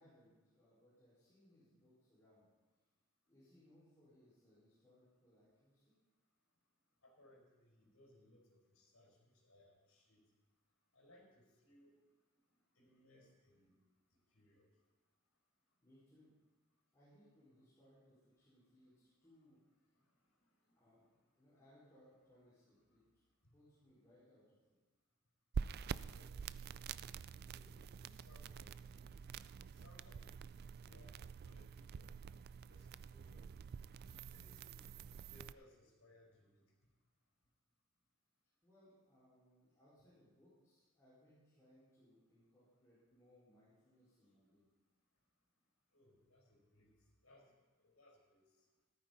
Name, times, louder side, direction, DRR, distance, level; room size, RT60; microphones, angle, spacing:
voice 1, 0.0-2.5 3.3-5.9 15.8-16.3 16.9-19.6 20.8-23.0 23.5-24.8 38.6-44.6, equal, 15° left, -13 dB, 4.9 m, -68 dB
voice 2, 7.0-10.2 10.9-11.9 12.7-13.8 14.3-14.7 26.0-26.5 27.5-29.1 29.6-30.2 30.8-32.1 32.7-33.6 34.3-34.9 35.3-36.6 45.9-46.9 47.2-47.5 47.8-48.4, left 1 dB, 80° left, -3 dB, 4.5 m, -67 dB
sound 1, 25.5-35.5, right 6 dB, 50° right, 0.3 m, -47 dB
14.5 x 13.5 x 4.1 m, 1.2 s
head